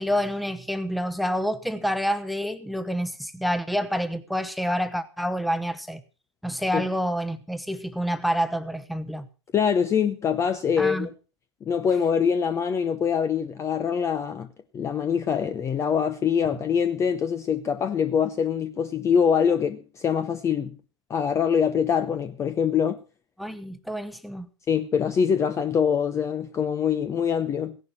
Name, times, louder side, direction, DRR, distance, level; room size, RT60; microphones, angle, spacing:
voice 1, 0.0-6.0 6.4-9.3 10.8-11.1 23.4-24.5, equal, ahead, 1.2 m, -28 dB
voice 2, 9.5-11.1 11.7-14.5 14.7-20.8 21.1-23.0 24.7-27.8, left 7 dB, 20° left, 0.8 m, -24 dB
16.5 x 11.0 x 6.0 m
figure-of-eight pair, 110°, 15 cm